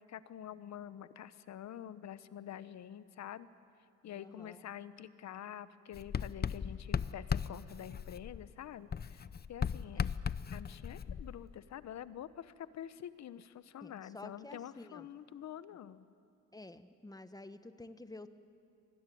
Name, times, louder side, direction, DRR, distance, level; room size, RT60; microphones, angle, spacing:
voice 1, 0.0-3.5 4.0-10.2 10.5-16.0, left 10 dB, 65° left, 15 dB, 1.1 m, -47 dB
voice 2, 4.2-4.6 10.0-10.1 13.8-15.1 16.5-18.3, left 2 dB, 10° left, 11 dB, 1.2 m, -50 dB
Writing, 5.9-8.6 8.9-11.6, left 7 dB, 30° left, 0.7 m, -37 dB
25.0 x 20.0 x 9.4 m, 2.7 s
cardioid pair, 90°, 30 cm